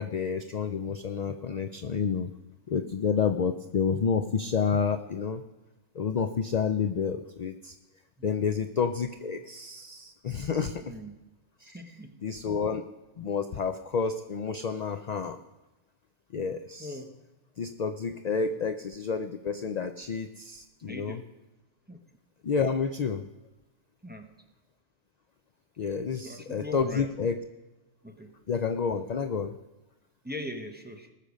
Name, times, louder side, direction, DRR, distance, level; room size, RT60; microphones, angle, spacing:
voice 1, 0.0-2.3 2.7-5.4 5.9-7.8 8.2-10.8 11.6-11.8 12.2-12.8 13.2-15.4 16.3-17.0 17.6-21.2 22.4-23.3 25.8-27.4 28.5-29.6, left 6 dB, 60° left, 9 dB, 0.4 m, -29 dB
voice 2, 8.2-8.7 10.9-11.1 11.7-12.2 16.8-17.2 18.4-18.6 20.9-21.3 21.9-22.0 24.0-24.3 26.2-27.1 28.0-28.4 30.2-31.1, left 1 dB, 10° right, 4 dB, 0.8 m, -41 dB
19.5 x 6.6 x 5.1 m, 1.1 s
omnidirectional pair, 1.3 m